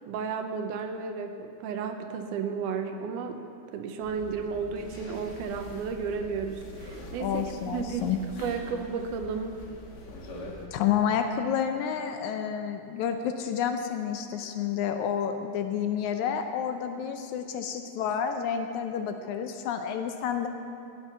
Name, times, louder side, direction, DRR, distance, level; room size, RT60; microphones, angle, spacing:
voice 1, 0.1-3.4 3.7-8.1 8.4-9.6, right 6 dB, 80° right, 6 dB, 2.2 m, -33 dB
sound 1, 4.0-10.7, left 1 dB, 55° left, 1.2 m, -43 dB
voice 2, 7.2-8.2 10.7-20.5, left 8 dB, 80° left, 6 dB, 1.9 m, -29 dB
13.0 x 9.0 x 5.6 m, 2.5 s
omnidirectional pair, 3.7 m